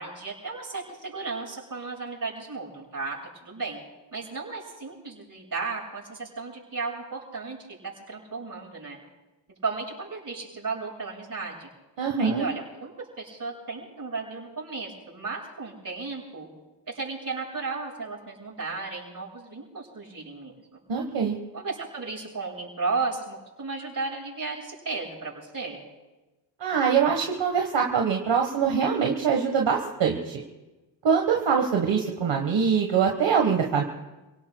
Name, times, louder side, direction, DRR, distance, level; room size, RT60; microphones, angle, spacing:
voice 1, 0.0-3.8 4.1-9.0 9.6-11.7 12.2-16.5 16.9-20.5 21.5-25.8, right 4 dB, 45° right, -5 dB, 7.2 m, -34 dB
voice 2, 12.0-12.4 20.9-21.4 26.6-30.3 31.0-33.8, right 6 dB, 70° right, 1 dB, 1.6 m, -23 dB
29.5 x 18.0 x 2.3 m, 1.1 s
cardioid pair, 75°, 45 cm